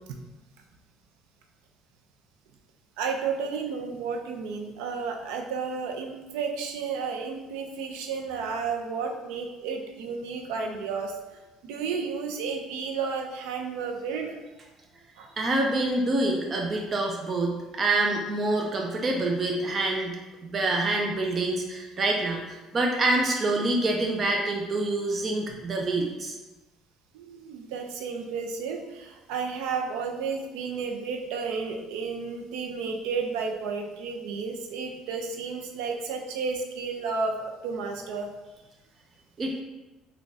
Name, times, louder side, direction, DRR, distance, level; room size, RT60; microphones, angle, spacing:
voice 1, 3.0-11.2 11.6-14.4 15.2-15.3 25.4-25.6 27.1-38.3, right 5 dB, 90° right, 3 dB, 0.5 m, -32 dB
voice 2, 15.4-26.4 39.4-39.6, right 2 dB, 30° right, 1 dB, 0.4 m, -26 dB
3.9 x 2.2 x 3.5 m, 1.1 s
cardioid pair, 130°, 0 cm